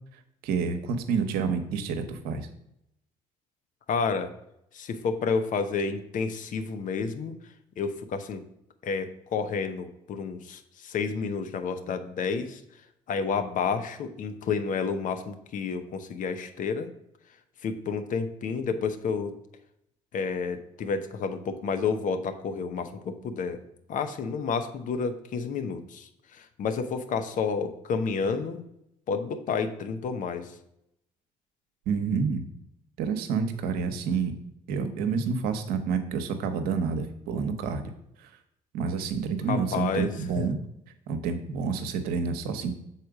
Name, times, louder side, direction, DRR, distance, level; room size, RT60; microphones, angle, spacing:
voice 1, 0.4-2.5 31.9-32.4 33.0-34.3 34.7-37.8 38.2-38.3 38.7-40.6 41.1-42.7, right 5 dB, 75° right, 8 dB, 0.9 m, -28 dB
voice 2, 3.9-4.3 4.7-7.3 7.8-8.4 8.8-12.6 13.1-16.9 17.6-19.3 20.1-23.6 23.9-28.6 29.1-30.5 39.5-40.4, left 5 dB, 55° left, 9 dB, 0.8 m, -30 dB
6.6 x 4.2 x 4.8 m, 0.79 s
hypercardioid pair, 60°, 16 cm